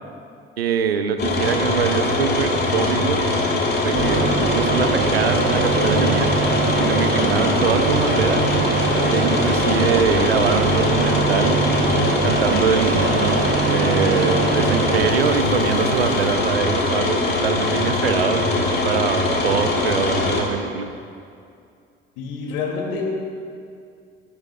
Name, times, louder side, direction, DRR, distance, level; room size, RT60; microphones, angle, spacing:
voice 1, 0.6-3.2 3.8-4.2 4.5-6.3 6.8-8.4 9.1-11.6 12.2-20.9, right 7 dB, 80° right, 9 dB, 0.7 m, -23 dB
sound 1, 1.2-20.4, left 2 dB, 35° left, 2.3 m, -22 dB
sound 2, 3.9-16.3, right 5 dB, 40° right, 1.1 m, -23 dB
voice 2, 22.2-23.0, left 5 dB, 60° left, -1 dB, 2.6 m, -28 dB
21.0 x 12.5 x 2.4 m, 2.3 s
figure-of-eight pair, 55°, 30 cm